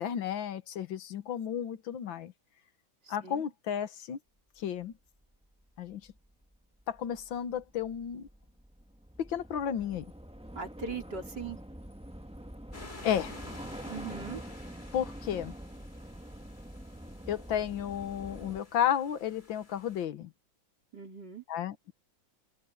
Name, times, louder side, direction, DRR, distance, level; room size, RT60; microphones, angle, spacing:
voice 1, 0.0-2.3 3.1-4.2 4.6-4.9 5.8-6.0 6.9-8.3 9.2-10.1 13.0-13.3 14.9-15.6 17.3-20.3 21.5-21.9, left 9 dB, 80° left, 1.9 m, -33 dB
voice 2, 3.1-3.4 10.5-11.6 13.9-14.4 20.9-21.4, right 5 dB, 60° right, 4.9 m, -40 dB
Train / Subway metro underground, 5.2-5.3 5.6-18.6, equal, 5° right, 1.1 m, -46 dB
sound 1, 12.7-20.1, left 2 dB, 25° left, 2.4 m, -52 dB
omnidirectional pair, 2.1 m